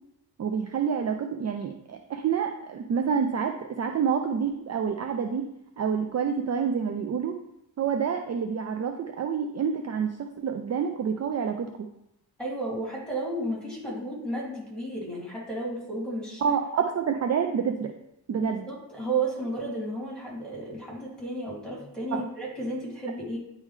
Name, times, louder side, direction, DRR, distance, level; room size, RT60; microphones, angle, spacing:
voice 1, 0.4-5.4 5.8-7.4 7.8-11.9 16.4-17.9 18.3-18.6 22.1-22.3, right 7 dB, 40° right, 5 dB, 0.4 m, -28 dB
voice 2, 12.4-16.4 18.4-23.4, right 2 dB, ahead, -6 dB, 2.4 m, -33 dB
9.8 x 3.7 x 3.2 m, 0.83 s
wide cardioid pair, 145°, 40 cm